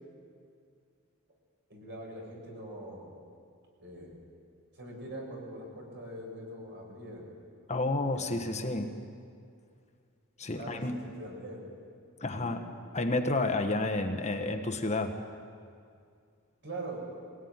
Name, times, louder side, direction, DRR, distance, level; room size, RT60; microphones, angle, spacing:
voice 1, 1.7-3.1 3.8-4.2 4.8-7.2 8.1-8.9 10.5-11.6 12.3-12.5 16.6-17.0, right 1 dB, 55° right, -1 dB, 7.1 m, -43 dB
voice 2, 7.7-8.9 10.4-11.0 12.2-12.7 12.9-15.2, left 2 dB, 30° left, 5 dB, 1.3 m, -30 dB
22.5 x 18.5 x 9.6 m, 2.3 s
head